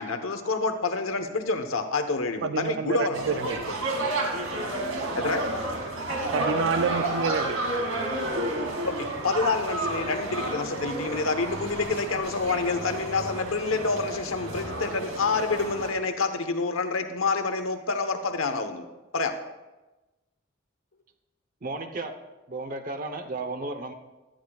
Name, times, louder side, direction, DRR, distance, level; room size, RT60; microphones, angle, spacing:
voice 1, 0.0-3.7 5.1-5.4 8.8-18.8 19.1-19.3, left 3 dB, 75° left, 1.1 m, -28 dB
voice 2, 2.4-3.6 6.3-7.7, right 6 dB, 60° right, 0.4 m, -28 dB
sound 1, 3.1-15.9, right 2 dB, 85° right, 2.3 m, -31 dB
voice 3, 21.6-22.1 22.5-23.9, right 3 dB, 40° right, 0.9 m, -33 dB
17.5 x 13.0 x 2.4 m
head